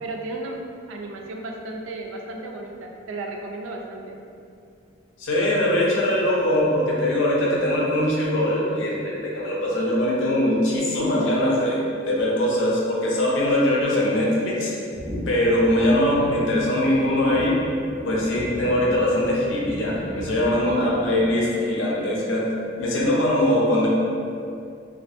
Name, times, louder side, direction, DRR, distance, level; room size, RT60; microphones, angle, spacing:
voice 1, 0.0-0.6 0.9-4.2, right 2 dB, 80° right, 1 dB, 0.3 m, -34 dB
voice 2, 5.2-11.8 12.0-14.7 15.3-17.5 18.0-22.5 22.8-23.9, left 1 dB, 70° left, -3 dB, 0.5 m, -21 dB
sound 1, 14.9-21.7, equal, 5° right, 0.4 m, -36 dB
2.5 x 2.4 x 2.5 m, 2.5 s
head